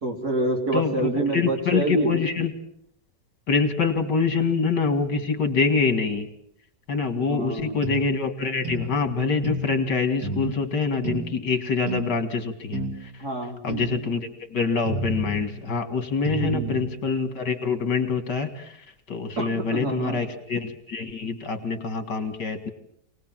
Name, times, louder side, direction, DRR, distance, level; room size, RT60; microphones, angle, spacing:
voice 1, 0.0-2.1 7.1-7.8 13.2-13.6 16.3-16.7 19.4-20.2, right 2 dB, 60° right, 1 dB, 4.5 m, -27 dB
voice 2, 0.7-2.5 3.5-6.3 6.9-13.1 13.6-18.8 19.1-22.7, left 5 dB, 80° left, 9 dB, 2.9 m, -25 dB
sound 1, 7.8-8.0 8.6-8.9 9.4-9.7 10.2-10.5 11.0-11.3 11.9-12.1 12.7-13.0 13.7-14.0 14.8-15.5 16.2-16.9, right 2 dB, 80° right, 3.8 m, -30 dB
27.5 x 19.5 x 7.5 m, 0.71 s
omnidirectional pair, 1.8 m